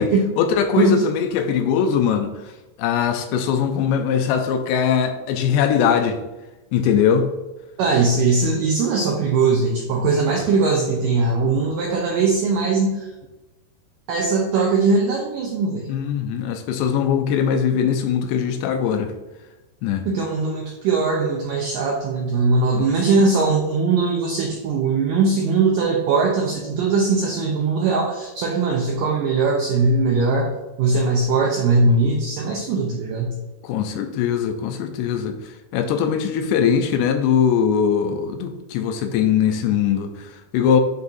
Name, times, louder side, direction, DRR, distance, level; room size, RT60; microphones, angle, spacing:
voice 1, 0.0-2.3 2.8-6.2 6.7-7.3 8.0-8.1 15.9-19.1 19.8-20.1 22.7-22.9 33.6-35.4 35.7-40.8, left 7 dB, 80° left, 6 dB, 2.7 m, -21 dB
voice 2, 7.8-13.1 14.1-15.9 20.1-30.5 30.8-33.3, right 3 dB, 90° right, -1 dB, 1.9 m, -20 dB
8.4 x 5.3 x 2.6 m, 1.1 s
omnidirectional pair, 5.0 m